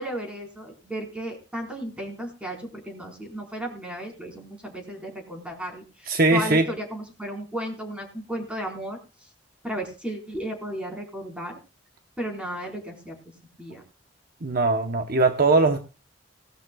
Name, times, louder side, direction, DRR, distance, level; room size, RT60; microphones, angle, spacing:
voice 1, 0.0-9.0 9.6-11.5 12.2-13.2 13.6-13.8, right 1 dB, 5° right, 1 dB, 4.3 m, -34 dB
voice 2, 6.1-6.7 14.4-15.8, right 3 dB, 50° right, 6 dB, 0.9 m, -20 dB
19.5 x 12.5 x 2.3 m, 0.33 s
head